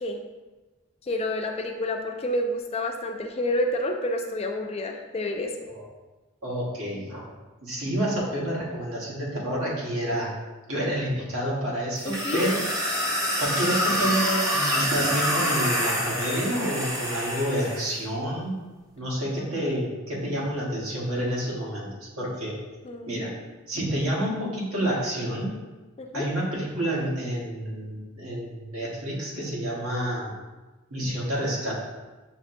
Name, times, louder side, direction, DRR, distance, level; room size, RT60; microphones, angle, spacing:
voice 1, 1.1-5.5 12.0-12.4 22.8-23.1 26.0-26.3, left 1 dB, 30° left, 3 dB, 0.3 m, -29 dB
voice 2, 6.4-7.3 7.6-10.3 10.7-13.0 13.4-18.6 19.0-22.6 23.1-23.3 23.7-25.5 26.1-30.3 30.9-31.8, equal, 85° right, -4 dB, 1.3 m, -29 dB
sound 1, 12.0-17.9, equal, 15° right, 0.6 m, -27 dB
6.2 x 2.9 x 2.6 m, 1.2 s
head